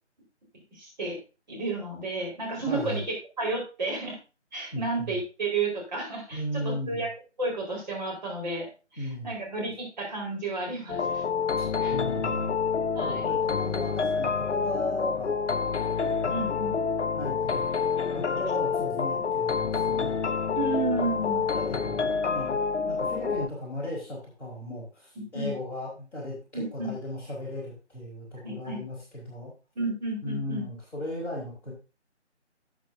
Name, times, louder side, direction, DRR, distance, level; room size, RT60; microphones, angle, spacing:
voice 1, 0.7-1.2 1.5-4.2 4.5-7.1 7.4-11.2 11.8-12.0 12.9-13.3 16.3-16.8 20.5-21.5 25.2-25.5 26.5-26.9 28.4-28.8 29.8-30.7, right 3 dB, 40° right, -2 dB, 4.4 m, -32 dB
voice 2, 2.6-3.0 4.7-5.2 6.3-7.1 9.0-9.3 11.6-12.5 13.0-15.4 16.1-16.3 17.1-17.7 18.1-20.2 21.2-29.5 30.2-31.7, left 1 dB, 5° left, -12 dB, 3.4 m, -36 dB
sound 1, 10.9-23.5, left 5 dB, 80° left, 0.7 m, -28 dB
12.5 x 8.1 x 2.6 m, 0.31 s
figure-of-eight pair, 160°, 35 cm